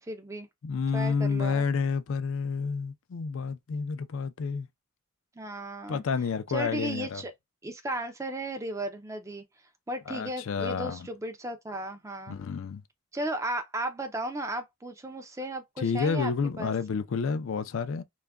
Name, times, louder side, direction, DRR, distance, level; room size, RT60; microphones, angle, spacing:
voice 1, 0.0-0.5 0.9-1.6 5.4-6.0 6.5-7.3 7.6-9.4 9.9-12.4 13.1-16.3 16.6-16.7, right 1 dB, 15° right, 0.4 m, -35 dB
voice 2, 0.6-4.7 5.9-7.2 10.1-11.1 12.3-12.8 15.8-18.0, left 5 dB, 65° left, 0.4 m, -30 dB
2.4 x 2.1 x 3.4 m
head